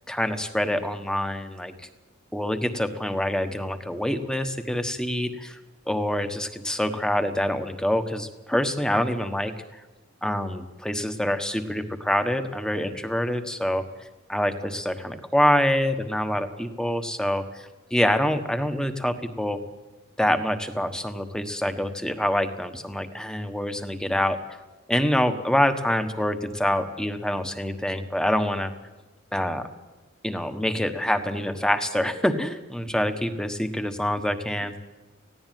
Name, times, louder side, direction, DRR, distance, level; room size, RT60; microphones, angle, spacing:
voice 1, 0.1-1.9 2.3-5.6 5.9-9.5 10.2-13.8 14.3-19.6 20.2-24.4 24.9-28.7 29.3-29.7 30.2-34.8, left 1 dB, 5° left, 8 dB, 1.3 m, -26 dB
18.5 x 16.0 x 9.2 m, 1.2 s
head